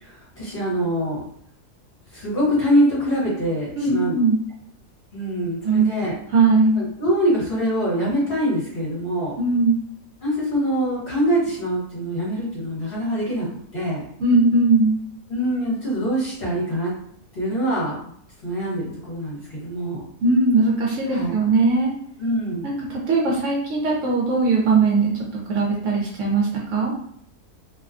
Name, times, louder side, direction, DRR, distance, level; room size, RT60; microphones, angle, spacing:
voice 1, 0.0-1.2 2.1-4.2 5.1-6.1 6.7-9.3 10.2-13.5 13.7-14.0 15.3-16.9 17.3-18.0 18.4-20.0 21.1-21.3 22.2-22.7, equal, 45° left, -8 dB, 1.1 m, -24 dB
voice 2, 3.8-4.4 5.6-5.9 6.3-6.8 9.4-9.8 14.2-15.0 20.2-21.9 22.6-25.1 25.5-26.9, right 3 dB, 70° right, -3 dB, 0.8 m, -19 dB
2.6 x 2.1 x 2.4 m, 0.66 s
omnidirectional pair, 1.5 m